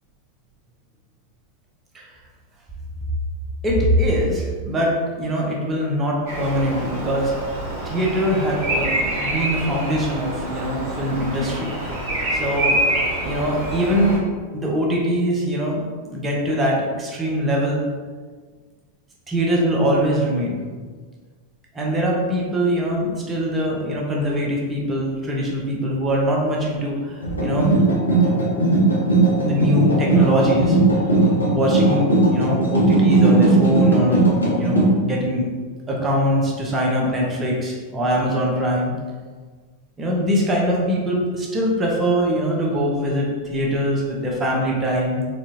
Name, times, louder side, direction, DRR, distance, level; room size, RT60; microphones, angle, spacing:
voice 1, 3.6-7.3 7.8-12.0 12.3-12.8 13.2-14.2 14.5-17.8 19.3-20.6 21.7-27.7 29.4-30.8 31.5-34.2 34.5-35.5 35.9-39.0 40.0-45.3, equal, 20° right, -3 dB, 0.8 m, -22 dB
Bird vocalization bird call bird song, 6.3-14.2, right 1 dB, 45° right, 0.9 m, -26 dB
sound 1, 27.2-34.9, right 2 dB, 80° left, 0.8 m, -18 dB
4.2 x 2.4 x 2.8 m, 1.5 s
figure-of-eight pair, 90°, 0 cm